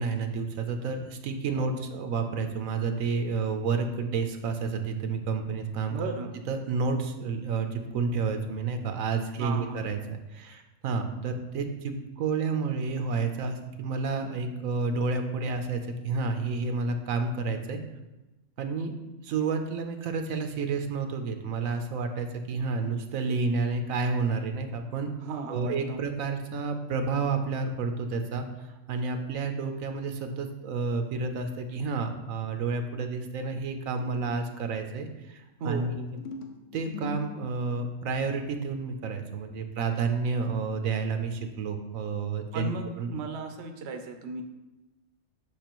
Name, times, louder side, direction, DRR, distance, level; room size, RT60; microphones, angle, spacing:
voice 1, 0.0-6.0 6.5-17.8 18.6-18.9 19.2-25.1 25.5-36.1 36.7-42.7 43.0-43.1, right 4 dB, 80° right, 6 dB, 1.1 m, -30 dB
voice 2, 5.9-6.3 9.4-9.9 25.2-26.0 35.6-35.9 42.5-44.4, right 3 dB, 60° right, 5 dB, 0.8 m, -35 dB
sound 1, 33.9-34.5 36.0-38.0, left 2 dB, 65° left, 1.0 m, -41 dB
6.6 x 5.9 x 3.0 m, 1.0 s
omnidirectional pair, 1.4 m